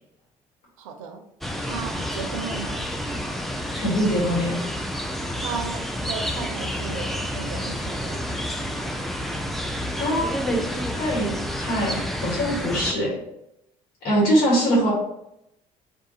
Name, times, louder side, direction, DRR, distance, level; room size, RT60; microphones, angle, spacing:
voice 1, 0.8-1.3 1.6-2.9 5.4-8.5, right 5 dB, 90° right, 5 dB, 0.4 m, -35 dB
sound 1, 1.4-12.9, equal, ahead, 0.3 m, -29 dB
voice 2, 3.7-4.8 10.0-10.6 11.0-13.2 14.0-14.9, equal, 70° left, -4 dB, 1.3 m, -23 dB
2.4 x 2.4 x 3.8 m, 0.82 s
hypercardioid pair, 60°, 17 cm